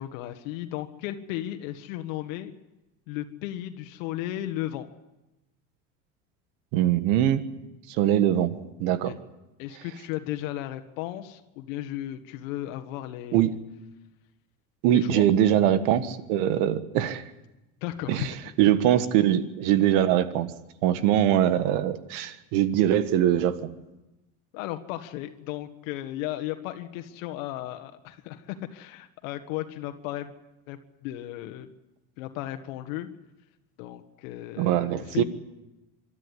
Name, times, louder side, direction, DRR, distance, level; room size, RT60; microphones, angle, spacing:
voice 1, 0.0-2.5 3.1-4.9 9.0-9.1 9.6-13.5 14.9-15.2 17.8-18.3 24.5-30.3 30.7-31.7 32.2-33.1 33.8-35.2, left 14 dB, 80° left, 7 dB, 1.6 m, -35 dB
voice 2, 6.7-7.4 7.9-9.2 13.3-13.5 14.8-17.2 18.1-18.3 18.6-20.5 20.8-23.7 34.6-35.2, right 11 dB, 75° right, 12 dB, 1.6 m, -22 dB
24.5 x 13.0 x 9.7 m, 0.99 s
supercardioid pair, 110°, 39 cm